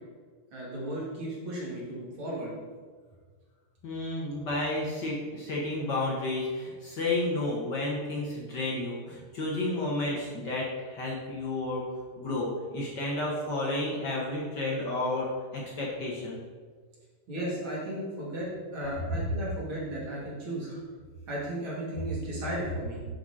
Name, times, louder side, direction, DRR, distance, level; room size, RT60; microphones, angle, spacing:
voice 1, 0.5-2.5 17.3-18.5 18.7-20.7 21.3-23.0, right 1 dB, 40° right, -6 dB, 3.1 m, -35 dB
voice 2, 3.8-11.8 12.2-16.4, left 2 dB, 55° left, -4 dB, 1.2 m, -31 dB
11.0 x 5.1 x 4.2 m, 1.6 s
omnidirectional pair, 3.8 m